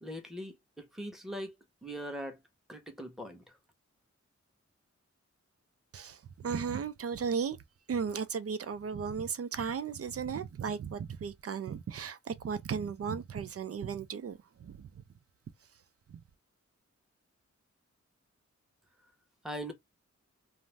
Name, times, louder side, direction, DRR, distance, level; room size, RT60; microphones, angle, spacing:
voice 1, 0.0-1.5 1.8-2.4 2.7-3.4 19.4-19.7, equal, ahead, 1.0 m, -41 dB
voice 2, 5.9-7.6 7.9-15.0 16.1-16.2, right 6 dB, 50° right, 0.5 m, -35 dB
2.5 x 2.1 x 3.2 m
cardioid pair, 55°, 29 cm